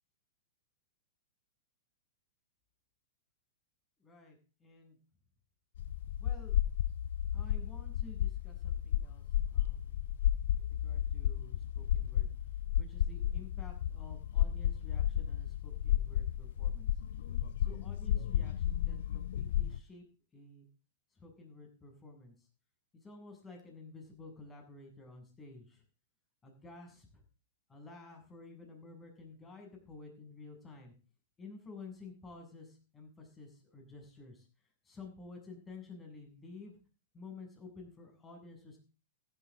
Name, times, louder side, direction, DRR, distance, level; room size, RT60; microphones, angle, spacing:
voice 1, 4.0-5.0 6.2-6.6 7.3-10.0 10.6-12.3 12.8-16.9 17.6-20.0 20.3-20.7 21.1-22.5 22.9-25.8 26.4-27.2 27.7-30.9 31.4-34.5 34.8-36.8 37.1-38.8, left 3 dB, 20° left, 3 dB, 7.2 m, -52 dB
sound 1, 5.8-19.8, left 11 dB, 65° left, 0.6 m, -33 dB
14.5 x 12.5 x 3.8 m, 0.34 s
hypercardioid pair, 115°, 0 cm